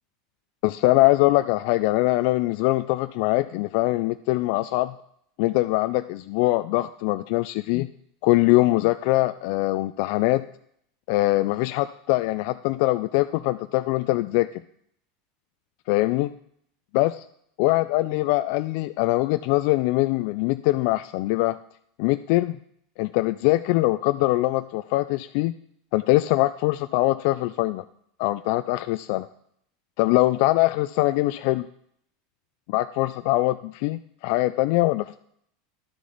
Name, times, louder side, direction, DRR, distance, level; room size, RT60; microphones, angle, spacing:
voice 1, 0.6-4.9 5.4-7.9 8.2-10.4 11.1-14.6 15.9-16.3 16.9-17.1 17.6-21.6 22.0-22.6 23.0-25.6 25.9-27.8 28.2-29.3 30.0-31.7 32.7-35.2, left 18 dB, 65° left, 11 dB, 0.3 m, -22 dB
11.0 x 6.5 x 4.0 m, 0.68 s
supercardioid pair, 110°, 0 cm